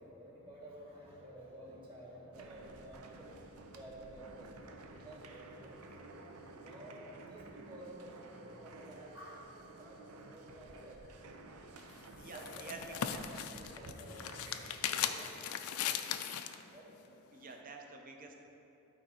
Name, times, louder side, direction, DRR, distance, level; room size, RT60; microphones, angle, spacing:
voice 1, 0.0-3.3 3.7-6.2 6.6-11.2 12.3-13.1 13.5-14.3 14.7-16.2 16.7-16.9 18.3-18.4, right 1 dB, 25° right, -6 dB, 1.8 m, -52 dB
sound 1, 2.3-15.3, right 2 dB, 85° right, 0.6 m, -53 dB
sound 2, 11.8-16.6, left 9 dB, 80° left, 0.4 m, -38 dB
voice 2, 12.0-13.3 17.3-18.3, right 3 dB, 40° right, 2 dB, 0.7 m, -49 dB
12.0 x 4.5 x 4.3 m, 3.0 s
head